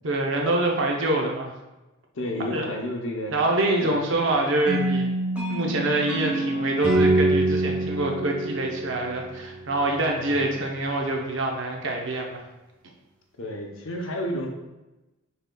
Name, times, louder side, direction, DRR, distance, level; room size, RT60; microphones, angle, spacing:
voice 1, 0.0-1.5 2.5-2.7 3.3-5.1 5.5-12.4, right 2 dB, 60° right, 1 dB, 0.6 m, -25 dB
voice 2, 2.1-3.4 3.8-4.2 10.2-10.6 13.4-14.5, equal, 70° left, 1 dB, 0.7 m, -31 dB
sound 1, 4.7-9.5, right 1 dB, 5° right, 1.1 m, -25 dB
6.5 x 3.6 x 2.3 m, 1.0 s
head